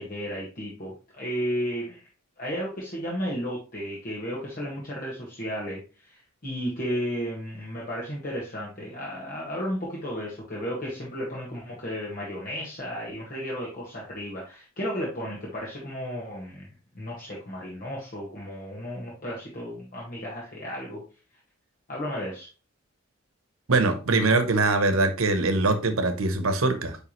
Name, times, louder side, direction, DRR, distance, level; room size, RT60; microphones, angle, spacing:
voice 1, 0.0-2.0 2.4-16.7 16.9-21.0 21.9-22.5, equal, 45° left, 1.7 m, -33 dB
voice 2, 23.7-27.0, right 3 dB, 90° right, 1.0 m, -22 dB
9.3 x 3.5 x 3.1 m
head